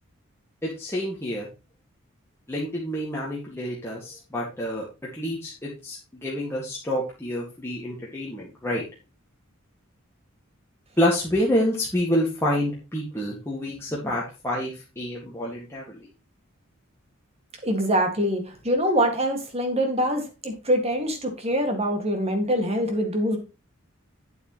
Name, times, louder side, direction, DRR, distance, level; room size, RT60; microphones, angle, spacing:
voice 1, 0.6-1.5 2.5-4.9 5.1-8.8 11.0-16.1, left 1 dB, 10° left, -5 dB, 2.0 m, -28 dB
voice 2, 17.6-23.4, equal, 30° right, 5 dB, 2.0 m, -24 dB
9.0 x 8.0 x 3.1 m, 0.29 s
head